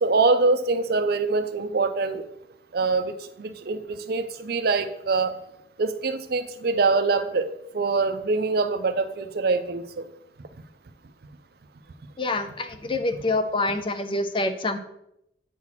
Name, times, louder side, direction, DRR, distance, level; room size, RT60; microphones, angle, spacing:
voice 1, 0.0-2.2 2.7-5.4 5.8-10.1, right 3 dB, 55° right, 10 dB, 0.5 m, -24 dB
voice 2, 12.2-14.8, left 2 dB, 25° left, 9 dB, 0.4 m, -26 dB
8.4 x 3.0 x 5.7 m, 0.82 s
head